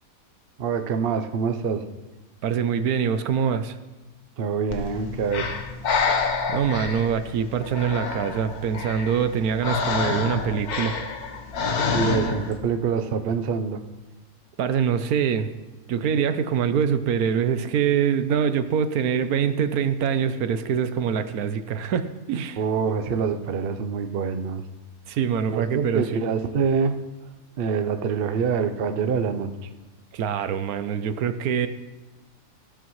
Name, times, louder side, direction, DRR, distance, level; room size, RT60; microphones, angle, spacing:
voice 1, 0.6-1.8 4.4-5.6 11.9-13.8 22.6-24.6 25.5-26.9 27.6-29.5, right 6 dB, 50° right, 8 dB, 0.7 m, -25 dB
voice 2, 2.4-3.8 6.5-11.0 14.6-15.5 15.9-22.6 25.1-26.2 30.1-31.7, right 7 dB, 75° right, 11 dB, 1.1 m, -24 dB
Breathing, 4.7-12.6, left 4 dB, 80° left, 1.6 m, -28 dB
15.0 x 13.0 x 3.1 m, 1.1 s
omnidirectional pair, 1.6 m